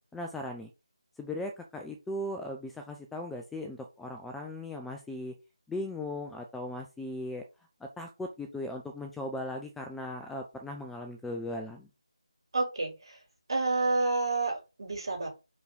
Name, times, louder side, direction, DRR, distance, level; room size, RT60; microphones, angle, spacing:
voice 1, 0.1-0.7 1.2-5.3 5.7-7.4 8.0-11.9, left 1 dB, 5° left, 4 dB, 0.5 m, -38 dB
voice 2, 12.5-13.2 13.5-15.3, right 3 dB, 55° right, 2 dB, 3.7 m, -29 dB
5.1 x 4.7 x 3.9 m, 0.26 s
figure-of-eight pair, 160°, 3 cm